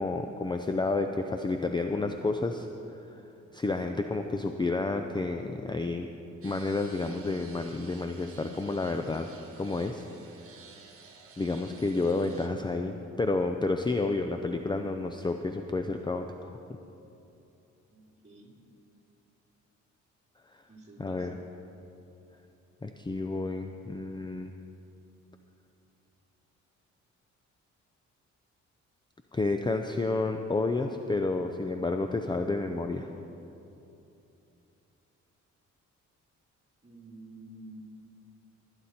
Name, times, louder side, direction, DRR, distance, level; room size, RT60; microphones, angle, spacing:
voice 1, 0.0-2.7 3.0-3.2 3.5-6.1 6.4-9.3 9.6-10.1 11.4-16.3 21.0-21.4 22.8-24.5 29.3-33.1, left 3 dB, 15° left, 6 dB, 0.5 m, -30 dB
sound 1, 6.4-12.5, right 5 dB, 45° right, 1.6 m, -53 dB
voice 2, 17.9-18.5 20.7-21.3 36.8-37.8, right 2 dB, 25° right, -2 dB, 2.8 m, -49 dB
19.5 x 9.8 x 4.3 m, 2.9 s
cardioid pair, 90°, 30 cm